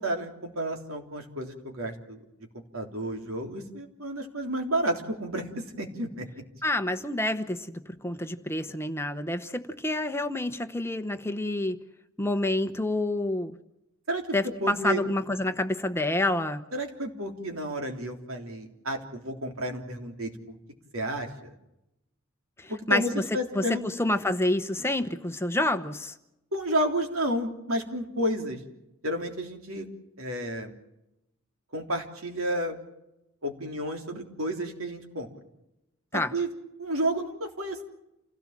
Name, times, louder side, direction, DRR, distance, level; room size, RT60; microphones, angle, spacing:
voice 1, 0.0-2.2 2.7-6.3 14.1-15.0 16.7-20.6 20.9-21.5 22.7-23.8 26.5-28.6 29.0-29.9 30.2-30.7 31.7-32.8 33.4-35.3 36.1-36.5 36.8-37.8, right 1 dB, 75° right, 4 dB, 3.5 m, -31 dB
voice 2, 6.6-11.8 12.2-13.6 14.3-16.6 22.6-23.2 23.5-26.1 36.1-36.3, left 1 dB, 10° left, 9 dB, 0.9 m, -28 dB
28.5 x 17.0 x 7.5 m, 0.89 s
head